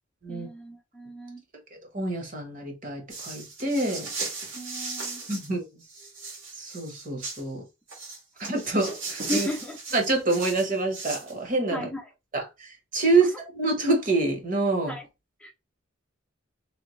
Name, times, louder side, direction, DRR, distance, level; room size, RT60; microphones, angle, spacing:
voice 1, 0.3-1.4 4.5-5.2 9.3-9.8 11.7-12.1 13.2-13.3 14.9-15.1 15.4-15.5, equal, 5° left, 0.7 m, -35 dB
voice 2, 1.9-4.1 5.3-5.6 6.6-7.6 8.4-9.5 9.9-11.9 12.3-14.9, right 3 dB, 40° right, 1.2 m, -26 dB
sound 1, 3.1-5.5 5.8-7.4 7.9-11.3, right 3 dB, 75° right, 2.0 m, -36 dB
3.4 x 3.3 x 3.1 m
head